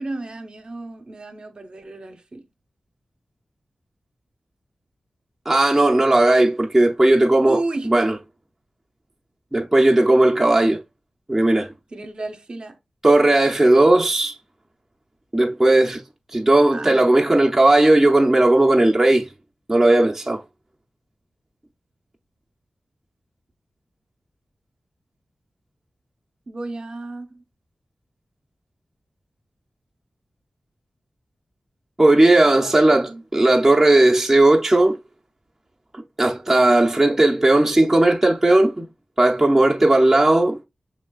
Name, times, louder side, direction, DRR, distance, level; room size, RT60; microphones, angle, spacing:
voice 1, 0.0-2.4 7.4-8.0 11.9-12.8 16.7-17.3 26.5-27.4 32.3-33.2, right 2 dB, 50° right, 0.8 m, -33 dB
voice 2, 5.5-8.1 9.5-10.8 11.3-11.7 13.0-14.4 15.3-16.0 16.3-19.3 19.7-20.4 32.0-35.0 35.9-38.9 39.2-40.6, right 2 dB, 15° right, 0.6 m, -16 dB
5.7 x 3.3 x 2.3 m
wide cardioid pair, 75°, 2 cm